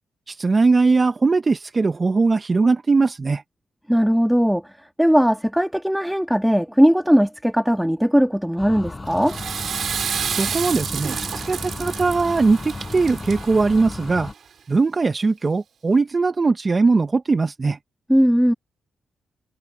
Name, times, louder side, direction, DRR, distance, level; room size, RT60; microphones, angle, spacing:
voice 1, 0.3-3.4 10.3-14.3 14.7-17.8, right 3 dB, 35° right, 0.9 m, -20 dB
voice 2, 3.9-4.6 5.0-9.4 18.1-18.5, equal, ahead, 2.1 m, -18 dB
sound 1, 8.6-14.3, left 3 dB, 25° left, 7.9 m, -34 dB
Water / Toilet flush, 9.1-14.3, right 7 dB, 65° right, 3.4 m, -30 dB
cardioid pair, 80°, 0 cm